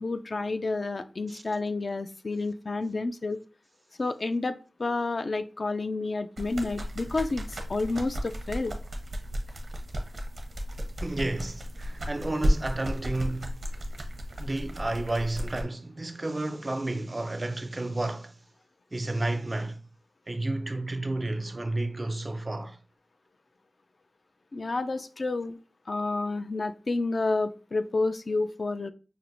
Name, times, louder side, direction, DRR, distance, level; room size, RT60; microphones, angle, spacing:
voice 1, 0.0-3.4 4.0-8.8 24.5-25.6 25.9-28.9, left 3 dB, 55° left, 0.3 m, -30 dB
sound 1, 6.4-15.6, equal, 70° right, 0.7 m, -33 dB
voice 2, 11.0-13.6 14.4-18.3 18.9-19.8 20.3-22.8, right 2 dB, 40° right, 0.4 m, -31 dB
5.8 x 2.0 x 2.6 m
wide cardioid pair, 55°, 0 cm